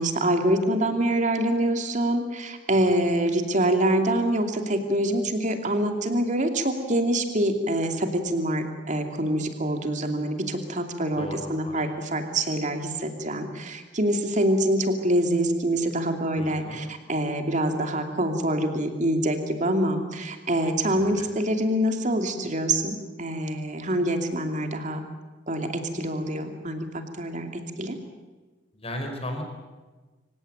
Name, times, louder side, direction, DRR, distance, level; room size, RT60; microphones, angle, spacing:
voice 1, 0.0-25.0 25.5-28.0, right 1 dB, 40° right, 5 dB, 2.7 m, -25 dB
voice 2, 11.2-11.9 16.4-16.9 20.9-21.3 28.7-29.4, left 1 dB, 30° left, 3 dB, 4.8 m, -36 dB
26.0 x 17.0 x 9.2 m, 1.3 s
head